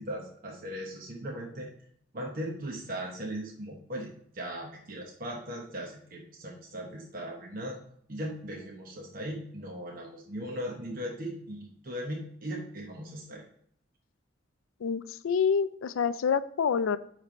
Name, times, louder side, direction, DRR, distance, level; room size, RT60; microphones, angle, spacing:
voice 1, 0.0-1.7 2.1-7.8 8.1-13.4, equal, 45° right, -1 dB, 1.0 m, -38 dB
voice 2, 14.8-17.0, left 6 dB, 90° left, 14 dB, 0.4 m, -27 dB
9.0 x 3.4 x 4.4 m, 0.66 s
head